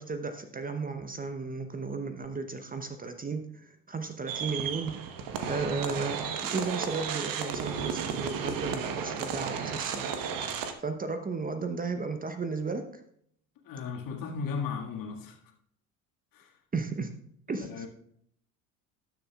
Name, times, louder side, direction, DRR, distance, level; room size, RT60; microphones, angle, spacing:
voice 1, 0.0-4.9 5.5-13.0 16.7-17.1 17.5-17.9, right 4 dB, 20° right, 8 dB, 0.9 m, -34 dB
sound 1, 4.3-10.7, right 7 dB, 50° right, 1.2 m, -33 dB
voice 2, 13.6-15.4 16.3-16.5 17.5-17.9, left 5 dB, 50° left, 1 dB, 1.9 m, -36 dB
19.0 x 7.1 x 2.4 m, 0.68 s
figure-of-eight pair, 65°, 44 cm